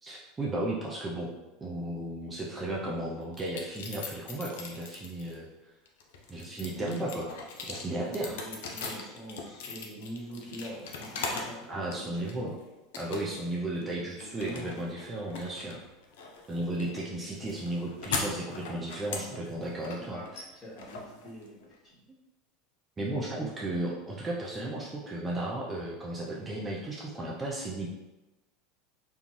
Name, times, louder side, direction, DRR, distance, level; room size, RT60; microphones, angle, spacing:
voice 1, 0.0-1.3 1.6-5.5 6.3-7.3 7.6-8.3 11.7-12.5 13.0-15.8 16.5-20.4 23.0-27.9, right 1 dB, 20° right, -4 dB, 0.5 m, -34 dB
sound 1, 3.3-5.3 5.9-11.6 11.9-12.5 12.9-13.5 13.8-21.7, left 4 dB, 70° left, 0.4 m, -40 dB
voice 2, 6.8-7.1 7.8-12.5 13.7-14.7 16.5-16.7 20.0-20.2 20.5-21.7 23.3-23.7, equal, 25° left, -6 dB, 1.3 m, -43 dB
2.5 x 2.3 x 3.1 m, 1.1 s
hypercardioid pair, 80°, 0 cm